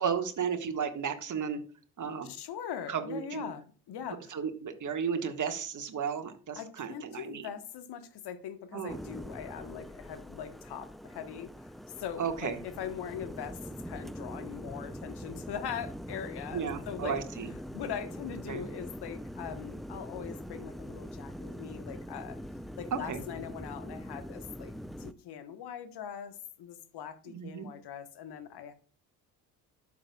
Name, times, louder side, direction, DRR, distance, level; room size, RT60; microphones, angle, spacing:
voice 1, 0.0-1.6 2.0-2.3 2.9-3.5 4.3-7.5 8.7-9.0 12.2-12.6 16.5-17.5 18.5-18.6 22.9-23.2 27.3-27.7, right 7 dB, 40° right, 1.7 m, -33 dB
voice 2, 2.2-4.4 6.5-17.2 17.7-22.4 22.8-24.7 25.0-28.7, left 8 dB, 55° left, 1.4 m, -41 dB
sound 1, 8.9-25.1, equal, ahead, 0.4 m, -43 dB
12.0 x 6.8 x 2.4 m
figure-of-eight pair, 50°, 48 cm